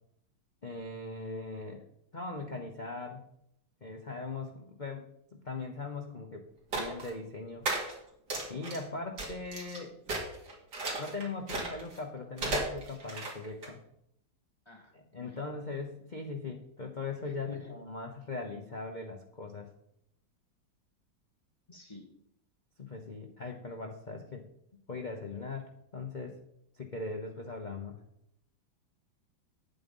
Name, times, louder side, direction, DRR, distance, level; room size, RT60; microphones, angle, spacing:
voice 1, 0.6-1.8 2.1-3.2 3.8-5.1 5.3-6.4 6.7-7.7 8.5-9.9 11.0-13.8 14.9-19.7 22.8-24.5 24.9-26.4 26.7-28.0, left 3 dB, 70° left, 2 dB, 0.4 m, -40 dB
sound 1, 6.7-7.1 7.7-7.9 8.3-8.8 9.2-9.8 10.1-12.0 12.4-13.7, right 2 dB, 55° right, 2.8 m, -34 dB
voice 2, 14.6-15.4 17.2-17.7 21.7-22.1, left 2 dB, 15° left, 0 dB, 1.3 m, -51 dB
9.2 x 7.7 x 5.4 m, 0.78 s
omnidirectional pair, 2.2 m